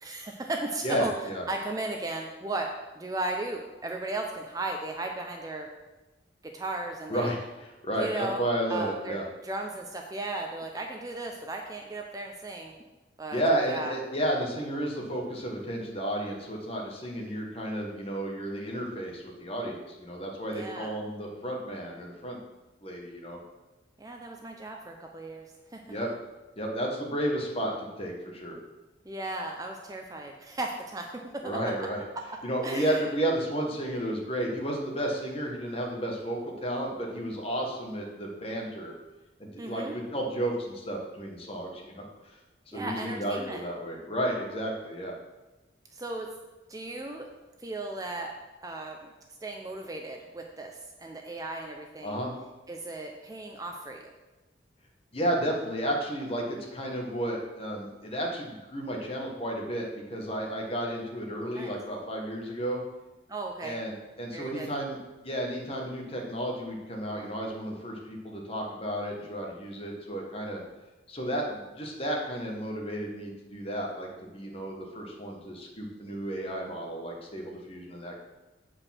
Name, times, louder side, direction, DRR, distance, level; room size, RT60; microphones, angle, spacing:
voice 1, 0.0-1.1 1.5-5.7 6.4-7.3 7.9-8.4 8.7-12.8 13.2-13.4 13.7-13.9 20.5-21.0 24.0-26.0 29.0-31.1 31.3-31.6 32.1-32.2 32.6-33.1 39.6-40.0 42.7-43.6 45.9-46.3 46.7-47.3 47.6-48.3 48.6-49.1 49.4-52.2 52.7-54.1 61.5-61.8 63.3-63.8 64.3-64.7, right 2 dB, 20° right, 2 dB, 0.6 m, -36 dB
voice 2, 0.8-1.4 7.1-7.4 7.8-9.2 13.3-22.4 22.8-23.4 25.9-26.1 26.6-28.6 31.4-32.0 32.4-38.9 39.4-42.1 42.7-45.1 52.0-52.3 55.1-62.8 63.6-65.0 65.2-70.6 71.1-78.1, right 1 dB, 30° left, 0 dB, 1.5 m, -32 dB
8.1 x 4.9 x 5.9 m, 1.1 s
head